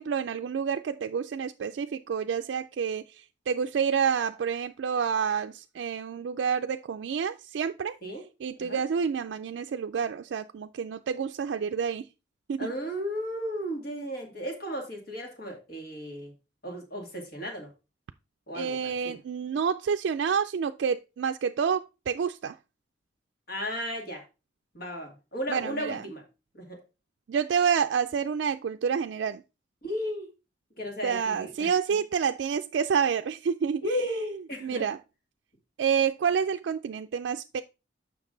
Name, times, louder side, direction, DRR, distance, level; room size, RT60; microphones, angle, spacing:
voice 1, 0.0-8.0 8.4-12.0 12.5-12.7 18.5-22.6 25.5-26.0 27.3-29.4 31.0-34.0 34.6-35.0 35.8-37.6, right 7 dB, 75° right, 0.3 m, -28 dB
voice 2, 12.6-16.3 16.6-17.7 18.5-19.2 23.5-24.2 24.7-26.2 26.5-26.8 29.8-30.3 30.8-31.7 33.8-34.9, equal, 55° left, 2.3 m, -35 dB
7.2 x 5.9 x 3.8 m
head